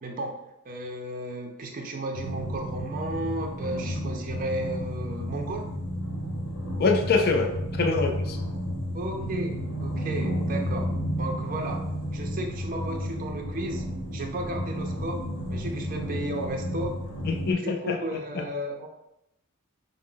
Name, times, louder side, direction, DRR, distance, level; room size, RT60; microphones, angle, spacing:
voice 1, 0.0-0.4 0.7-5.7 8.9-11.9 12.1-13.8 14.1-15.2 15.5-17.0 17.6-18.9, right 1 dB, 40° right, 3 dB, 0.4 m, -34 dB
sound 1, 2.1-17.5, equal, 80° left, 0.9 m, -32 dB
voice 2, 6.8-7.5 7.8-8.4 17.2-18.0 18.3-18.4, left 4 dB, 45° left, 3 dB, 0.4 m, -24 dB
4.8 x 2.0 x 3.7 m, 0.84 s
head